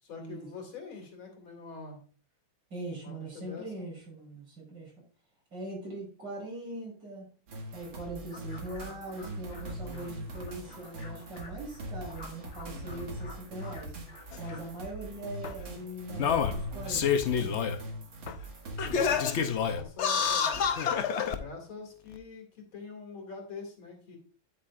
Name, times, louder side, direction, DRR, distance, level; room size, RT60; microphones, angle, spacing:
voice 1, 0.0-2.0 3.0-3.9 18.8-20.7 21.3-24.2, left 4 dB, 90° left, 2 dB, 3.3 m, -45 dB
voice 2, 2.7-4.9 5.5-7.3 7.7-13.9 14.4-17.5, right 2 dB, 65° right, -2 dB, 5.7 m, -41 dB
sound 1, 7.5-19.2, right 1 dB, 85° right, 2.6 m, -42 dB
sound 2, 8.3-14.9, left 3 dB, 35° left, 1.5 m, -51 dB
Singing, 14.3-14.4 15.4-15.5 16.1-17.8 18.3-18.4 18.8-21.4 22.1-22.2, left 7 dB, 70° left, 0.6 m, -28 dB
9.6 x 8.4 x 2.5 m, 0.41 s
omnidirectional pair, 2.1 m